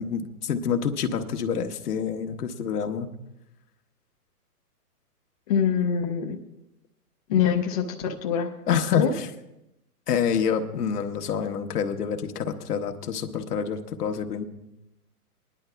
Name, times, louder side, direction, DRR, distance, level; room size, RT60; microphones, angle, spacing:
voice 1, 0.0-3.1 8.7-9.3 10.1-14.4, left 7 dB, 75° left, 5 dB, 1.2 m, -27 dB
voice 2, 5.5-6.4 7.3-8.5 9.0-9.1, left 7 dB, 25° left, 1 dB, 0.5 m, -24 dB
24.5 x 10.5 x 2.3 m, 0.91 s
hypercardioid pair, 145°, 47 cm